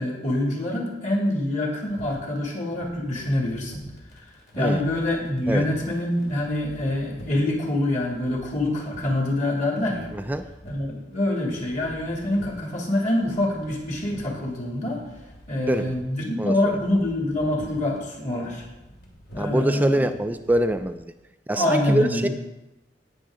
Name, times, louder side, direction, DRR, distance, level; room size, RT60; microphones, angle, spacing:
voice 1, 0.0-3.8 4.5-10.1 10.6-15.0 15.5-18.6 19.3-20.0 21.5-22.3, left 1 dB, 45° left, -1 dB, 2.4 m, -25 dB
sound 1, 1.9-20.9, equal, 70° left, 2.4 m, -46 dB
voice 2, 10.1-10.4 15.6-15.9 16.4-16.8 19.4-21.1 21.5-22.3, right 1 dB, 10° right, 9 dB, 0.3 m, -24 dB
17.5 x 6.1 x 3.7 m, 0.99 s
head